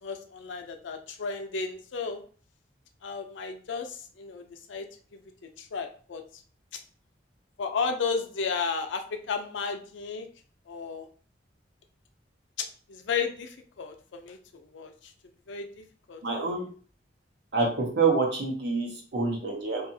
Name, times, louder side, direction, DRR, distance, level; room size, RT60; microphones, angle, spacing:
voice 1, 0.0-2.2 3.0-4.9 5.1-5.2 5.6-6.2 7.6-10.3 10.7-11.1 12.9-14.4 14.7-15.1 15.5-15.7 16.1-16.2, left 5 dB, 90° left, 6 dB, 0.5 m, -33 dB
voice 2, 16.2-16.7 17.5-19.9, right 4 dB, 70° right, -1 dB, 0.9 m, -27 dB
2.7 x 2.4 x 2.7 m, 0.43 s
head